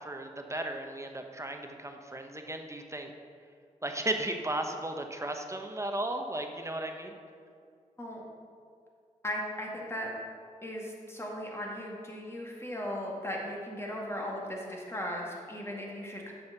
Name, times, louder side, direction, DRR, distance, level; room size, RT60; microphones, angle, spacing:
voice 1, 0.0-3.1 3.8-7.1, right 1 dB, 20° right, 4 dB, 1.0 m, -35 dB
voice 2, 9.2-10.1 10.6-16.3, equal, 20° left, -2 dB, 2.1 m, -37 dB
6.9 x 5.7 x 6.6 m, 2.2 s
cardioid pair, 45°, 13 cm